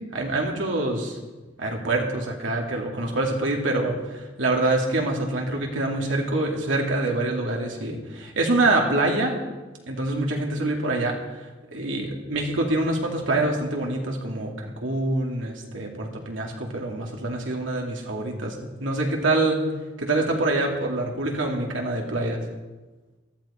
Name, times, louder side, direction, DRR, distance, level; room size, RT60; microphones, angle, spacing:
voice 1, 0.1-1.2 1.6-9.3 9.9-19.6 20.0-22.4, right 2 dB, 80° right, 0 dB, 2.4 m, -25 dB
14.0 x 13.5 x 4.3 m, 1.2 s
head